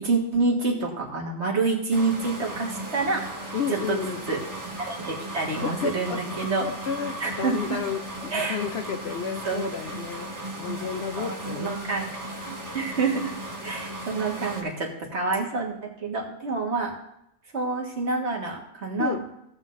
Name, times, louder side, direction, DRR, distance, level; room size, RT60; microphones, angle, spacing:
voice 1, 0.0-3.2 3.9-4.0 4.3-4.4 4.8-6.7 7.2-7.8 8.3-8.6 9.4-9.6 11.2-13.3 13.6-16.9 17.5-19.2, right 3 dB, 50° right, -1 dB, 1.8 m, -27 dB
sound 1, 1.9-14.6, right 1 dB, 15° right, 1.3 m, -36 dB
voice 2, 3.5-4.2 5.6-6.2 6.6-11.7 19.0-19.2, left 7 dB, 60° left, 6 dB, 0.7 m, -32 dB
16.0 x 7.5 x 2.6 m, 0.81 s
omnidirectional pair, 1.4 m